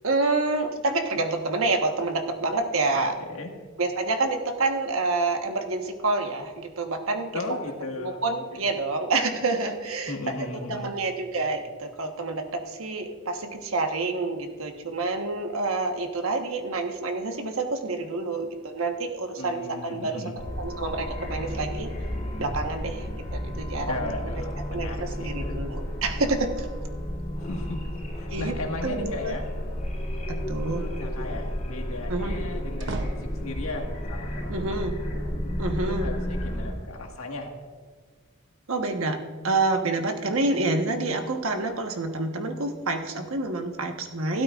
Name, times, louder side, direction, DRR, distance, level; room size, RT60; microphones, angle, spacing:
voice 1, 0.0-3.1 3.8-7.4 8.0-21.9 22.4-24.1 24.7-26.7 28.3-28.5 28.8-29.3 30.3-30.8 32.1-32.3 34.5-35.0 35.6-36.1 38.7-39.2 39.4-44.4, right 3 dB, 75° right, 4 dB, 1.2 m, -28 dB
voice 2, 7.3-8.2 8.5-8.6 10.1-10.9 19.4-20.4 23.8-25.6 27.4-29.5 30.6-34.9 35.9-37.5, left 2 dB, 80° left, 2 dB, 1.7 m, -36 dB
sound 1, 20.4-36.7, equal, 35° left, 2.9 m, -32 dB
sound 2, 29.6-30.1 32.4-33.9, right 2 dB, 55° right, 0.7 m, -36 dB
16.5 x 12.5 x 2.5 m, 1.5 s
head